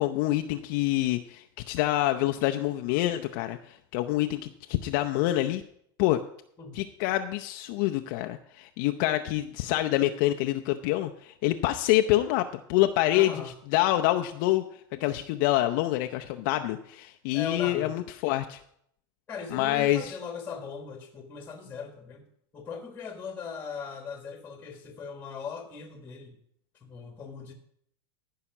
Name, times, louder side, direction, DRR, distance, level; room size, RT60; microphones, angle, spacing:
voice 1, 0.0-5.6 6.0-6.2 6.7-13.3 13.7-14.6 14.9-18.6 19.5-20.2, left 15 dB, 55° left, 6 dB, 0.6 m, -26 dB
voice 2, 13.1-13.5 17.3-17.9 19.3-22.2 22.5-26.3 26.8-27.5, left 5 dB, 15° left, 4 dB, 1.6 m, -39 dB
14.5 x 5.7 x 6.0 m, 0.70 s
supercardioid pair, 145°, 13 cm